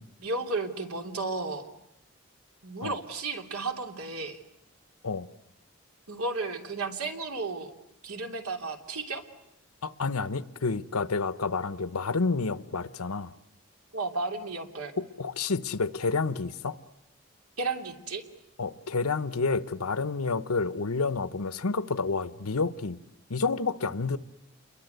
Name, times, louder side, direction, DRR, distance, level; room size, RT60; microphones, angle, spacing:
voice 1, 0.2-1.6 2.6-4.4 6.1-7.7 8.0-9.2 13.9-14.9 17.6-18.2, right 3 dB, 90° right, 3.1 m, -33 dB
voice 2, 9.8-13.3 15.0-16.8 18.6-23.0 23.3-24.2, left 4 dB, 85° left, 0.9 m, -29 dB
29.0 x 22.5 x 8.1 m
head